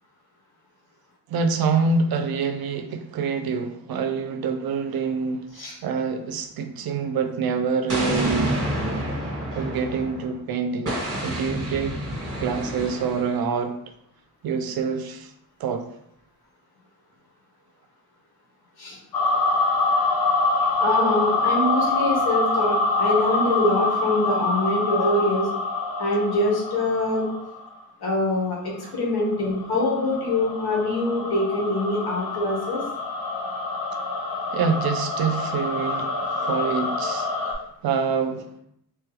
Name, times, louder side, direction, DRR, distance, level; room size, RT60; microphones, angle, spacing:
voice 1, 1.3-8.9 9.5-12.0 12.4-13.8 14.4-15.3 15.6-15.9 19.8-19.9 28.8-28.9 34.5-37.3 37.8-38.5, right 5 dB, 70° right, 8 dB, 0.5 m, -26 dB
Explosion, 7.9-10.3 10.9-13.4, right 1 dB, 40° right, 1.3 m, -28 dB
sound 1, 19.1-27.8 28.9-37.5, left 3 dB, 65° left, 0.7 m, -26 dB
voice 2, 20.8-25.5 26.0-27.3 28.0-32.8, left 1 dB, 80° left, -3 dB, 1.1 m, -24 dB
3.1 x 2.2 x 3.1 m, 0.72 s
cardioid pair, 75°, 38 cm